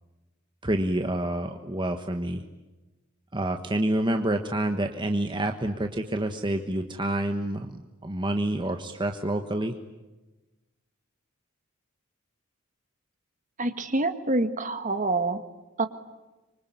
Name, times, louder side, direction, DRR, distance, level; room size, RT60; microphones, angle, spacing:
voice 1, 0.6-2.5 3.3-9.7, right 1 dB, 25° right, 5 dB, 1.3 m, -28 dB
voice 2, 13.6-15.4 15.8-15.9, right 2 dB, 40° right, 9 dB, 1.7 m, -26 dB
26.0 x 24.5 x 9.5 m, 1.1 s
head